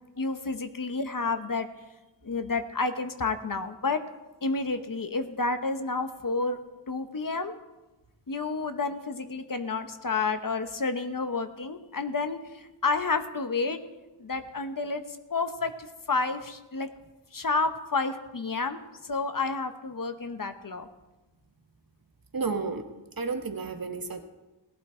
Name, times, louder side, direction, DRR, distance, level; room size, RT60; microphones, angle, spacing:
voice 1, 0.2-1.7 2.2-4.0 4.4-6.6 6.9-7.6 8.3-13.8 14.2-16.9 17.3-20.9, left 3 dB, 50° left, 9 dB, 1.0 m, -30 dB
voice 2, 22.3-22.8 23.2-24.2, right 4 dB, 55° right, 6 dB, 1.4 m, -31 dB
17.0 x 12.0 x 4.4 m, 1.1 s
wide cardioid pair, 70°, 42 cm